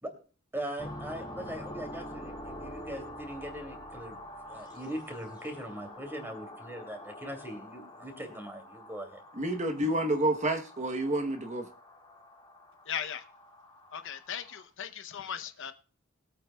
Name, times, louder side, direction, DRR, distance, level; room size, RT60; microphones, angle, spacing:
voice 1, 0.5-4.2 4.5-9.2, right 1 dB, 10° right, 5 dB, 2.8 m, -40 dB
sound 1, 0.8-14.6, left 1 dB, 20° left, 2.1 m, -46 dB
voice 2, 9.4-11.7, right 1 dB, 35° right, 5 dB, 1.0 m, -29 dB
voice 3, 12.9-13.2 13.9-15.7, left 8 dB, 60° left, 9 dB, 0.8 m, -38 dB
21.5 x 8.8 x 2.3 m, 0.39 s
head